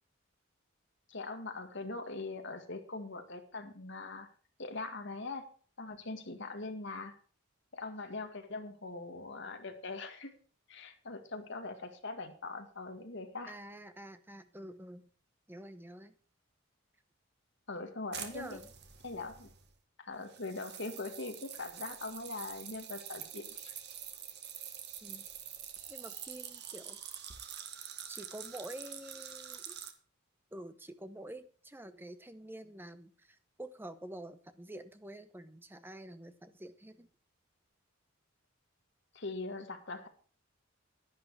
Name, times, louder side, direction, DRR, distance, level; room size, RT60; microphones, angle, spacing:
voice 1, 1.1-4.3 4.6-5.5 5.8-7.2 7.7-10.3 10.7-13.6 17.7-18.6 19.0-19.5 20.0-23.7 39.1-40.1, left 3 dB, 60° left, 5 dB, 2.0 m, -42 dB
voice 2, 13.5-15.1 15.5-16.1 18.3-18.7 25.0-25.3 25.9-27.0 28.1-29.8 30.5-37.1, right 1 dB, 10° right, 11 dB, 0.9 m, -48 dB
sound 1, 18.1-19.7 20.3-29.9, right 9 dB, 55° right, 1.5 m, -46 dB
11.0 x 11.0 x 4.7 m, 0.41 s
head